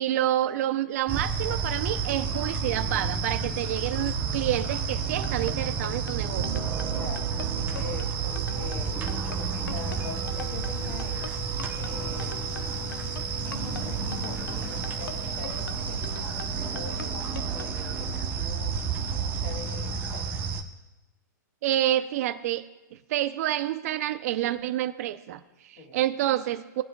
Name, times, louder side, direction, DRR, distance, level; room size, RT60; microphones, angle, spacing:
voice 1, 0.0-6.7 21.6-22.6 22.9-26.8, right 13 dB, 50° right, 11 dB, 0.6 m, -28 dB
sound 1, 1.1-20.6, right 6 dB, 20° right, 0.8 m, -30 dB
sound 2, 5.0-17.7, left 7 dB, 90° left, 0.7 m, -42 dB
sound 3, 6.4-18.2, left 9 dB, 70° left, 1.7 m, -46 dB
voice 2, 6.9-11.3 11.7-12.4 13.4-16.4 16.7-18.8 19.1-20.5 25.8-26.0, left 5 dB, 45° left, 1 dB, 2.5 m, -43 dB
19.0 x 8.0 x 2.3 m, 1.0 s
hypercardioid pair, 145°, 10 cm